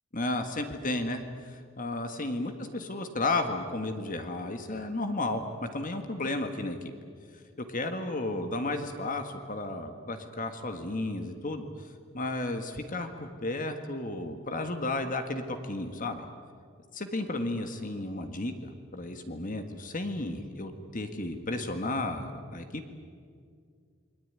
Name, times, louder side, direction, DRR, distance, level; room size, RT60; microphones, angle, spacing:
voice 1, 0.1-6.8 7.6-11.7 12.1-16.2 16.9-22.8, left 2 dB, 35° left, 7 dB, 1.7 m, -33 dB
28.0 x 22.0 x 9.6 m, 2.1 s
head